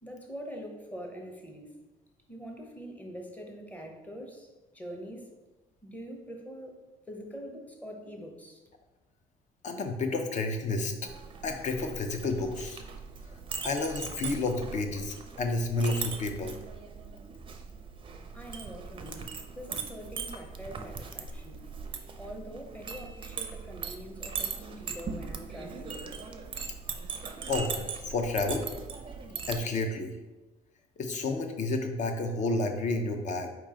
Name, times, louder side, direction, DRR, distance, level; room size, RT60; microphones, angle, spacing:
voice 1, 0.0-1.8 2.3-4.5 4.7-5.3 5.8-6.8 7.1-8.6 18.3-19.3 19.5-21.7 22.2-26.1, equal, 10° left, 2 dB, 0.8 m, -44 dB
voice 2, 9.6-10.9 11.4-12.8 13.6-16.5 27.5-27.8 28.0-28.7 29.5-30.1 31.0-33.5, left 2 dB, 45° left, 5 dB, 0.7 m, -30 dB
Chink clink, 11.0-29.6, right 5 dB, 30° right, 0.5 m, -40 dB
4.7 x 3.0 x 3.7 m, 1.1 s
cardioid pair, 110°, 17 cm